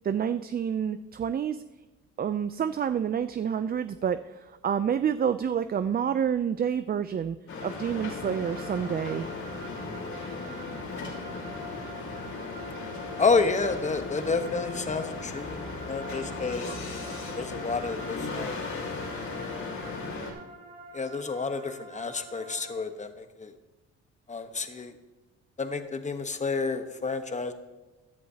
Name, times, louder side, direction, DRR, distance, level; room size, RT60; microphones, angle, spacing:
voice 1, 0.0-1.6 2.2-9.3, right 8 dB, 30° right, 12 dB, 0.4 m, -28 dB
sound 1, 7.5-20.3, left 3 dB, 70° left, 3.0 m, -37 dB
sound 2, 7.7-22.7, right 1 dB, 50° right, 2.7 m, -46 dB
voice 2, 13.2-16.8 17.3-18.6 20.9-23.5 24.3-24.9 25.6-27.5, left 4 dB, 25° left, 8 dB, 1.0 m, -30 dB
16.0 x 11.0 x 2.8 m, 1.1 s
cardioid pair, 90°, 30 cm